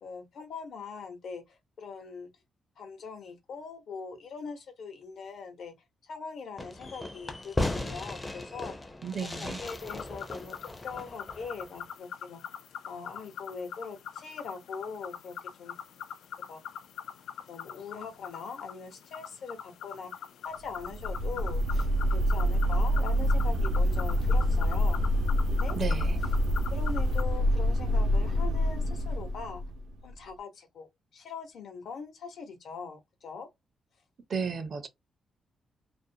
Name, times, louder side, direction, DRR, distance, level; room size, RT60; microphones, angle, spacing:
voice 1, 0.0-2.3 2.8-5.7 6.1-8.8 9.4-10.6 10.8-12.4 12.9-15.7 16.5-16.6 17.5-25.0 25.5-25.8 26.7-29.6 30.0-33.5, left 5 dB, 65° left, 0.8 m, -42 dB
Fireworks, 6.6-11.8, left 2 dB, 15° left, 0.5 m, -36 dB
voice 2, 9.0-9.6 25.7-26.2 34.3-34.9, right 5 dB, 45° right, 0.5 m, -34 dB
sound 1, 9.7-27.2, left 8 dB, 85° left, 0.3 m, -43 dB
sound 2, 20.7-30.1, equal, 90° right, 0.6 m, -26 dB
2.4 x 2.0 x 2.6 m
cardioid pair, 125°, 0 cm